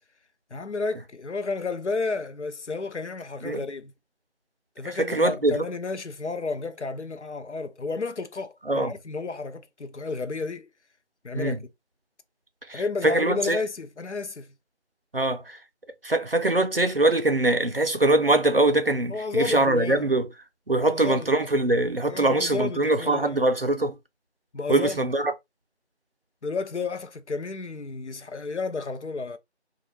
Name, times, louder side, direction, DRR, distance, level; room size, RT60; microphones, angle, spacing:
voice 1, 0.5-3.9 4.8-10.7 11.2-11.6 12.7-14.5 19.1-20.1 20.7-21.4 22.1-23.4 24.5-25.0 26.4-29.4, left 4 dB, 80° left, 0.6 m, -32 dB
voice 2, 5.1-5.6 8.7-8.9 11.3-11.6 12.7-13.6 15.1-15.6 16.0-20.2 20.7-23.9 24.7-25.3, right 2 dB, 55° right, 0.5 m, -23 dB
2.4 x 2.2 x 3.2 m
figure-of-eight pair, 180°, 34 cm